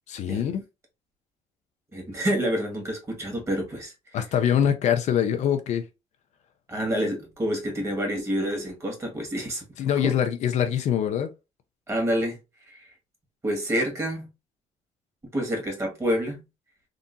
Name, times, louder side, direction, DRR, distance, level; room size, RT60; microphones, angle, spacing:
voice 1, 0.1-0.6 4.1-5.8 9.8-11.3, left 9 dB, 65° left, 0.6 m, -24 dB
voice 2, 1.9-3.9 6.7-9.6 10.0-10.1 11.9-12.4 12.7-12.9 13.4-14.3 15.3-16.4, equal, 20° right, 1.8 m, -28 dB
3.7 x 2.7 x 2.7 m
cardioid pair, 100°, 13 cm